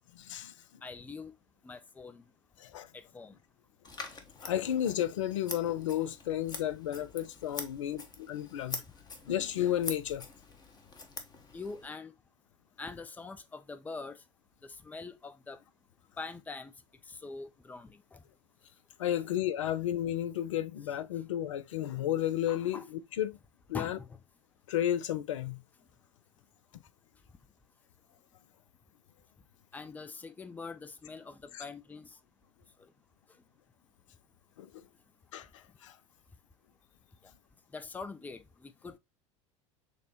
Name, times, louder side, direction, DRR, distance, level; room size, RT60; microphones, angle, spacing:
voice 1, 0.2-0.5 2.6-2.9 4.4-8.8 9.3-10.2 19.0-23.4 23.7-24.0 24.7-25.6 26.7-26.8 31.5-31.6 34.6-34.8 35.3-36.0, left 11 dB, 75° left, 0.4 m, -32 dB
voice 2, 0.8-1.3 1.6-2.2 2.9-3.4 11.5-12.1 12.8-14.2 14.6-15.6 16.2-16.7 17.1-18.2 22.7-22.9 23.7-24.1 29.7-32.2 32.8-32.9 37.7-39.0, left 4 dB, 10° left, 0.4 m, -43 dB
Scissors, 3.8-11.9, left 3 dB, 25° left, 0.9 m, -45 dB
6.5 x 2.2 x 2.8 m
hypercardioid pair, 75°, 16 cm